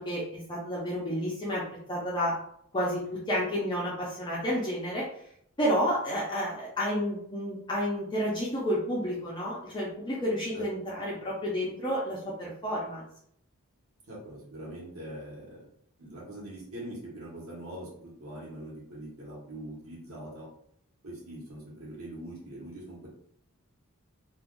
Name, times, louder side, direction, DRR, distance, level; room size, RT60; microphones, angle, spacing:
voice 1, 0.0-1.6 1.9-2.3 2.7-5.1 5.6-13.1, equal, 20° left, -6 dB, 0.6 m, -30 dB
voice 2, 14.1-15.7 16.0-20.5 21.0-23.1, right 1 dB, 85° right, -4 dB, 1.2 m, -42 dB
2.5 x 2.4 x 3.7 m, 0.69 s
head